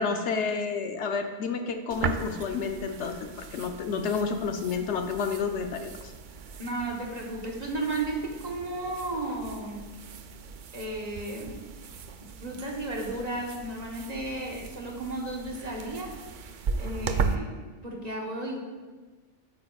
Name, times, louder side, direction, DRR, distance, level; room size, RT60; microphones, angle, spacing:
voice 1, 0.0-3.2 3.5-6.1, left 5 dB, 75° left, 6 dB, 1.0 m, -30 dB
sound 1, 1.9-17.4, right 5 dB, 55° right, 0.5 m, -37 dB
voice 2, 6.6-9.8 10.7-11.6 12.4-16.2 16.8-17.5 17.8-18.6, right 2 dB, 35° right, -1 dB, 1.2 m, -34 dB
9.8 x 8.5 x 2.3 m, 1.3 s
omnidirectional pair, 1.2 m